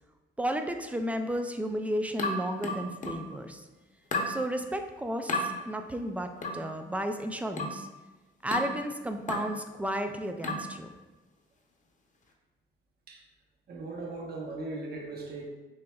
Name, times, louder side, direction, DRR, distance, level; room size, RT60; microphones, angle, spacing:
voice 1, 0.4-3.7 4.3-7.9 8.4-10.9, right 1 dB, 5° right, 6 dB, 0.4 m, -33 dB
sound 1, 2.2-3.3 4.1-4.4 5.3-5.5 6.4-6.7 7.6-7.9 8.5-8.8 9.3-9.6 10.4-10.7, left 2 dB, 40° left, 0.8 m, -32 dB
voice 2, 13.7-15.5, right 2 dB, 55° right, 0 dB, 0.8 m, -38 dB
6.4 x 2.9 x 2.3 m, 1.1 s
cardioid pair, 90°, 20 cm